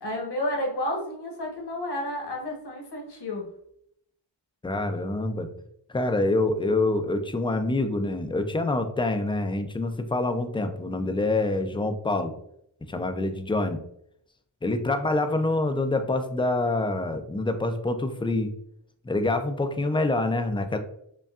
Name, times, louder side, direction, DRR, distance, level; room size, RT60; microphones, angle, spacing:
voice 1, 0.0-3.5, left 1 dB, 55° left, 0 dB, 1.1 m, -31 dB
voice 2, 4.6-5.5 5.9-12.3 12.9-13.8 14.6-18.5 19.1-20.8, left 2 dB, 10° left, 6 dB, 0.3 m, -26 dB
5.2 x 2.3 x 2.4 m, 0.70 s
wide cardioid pair, 85°, 48 cm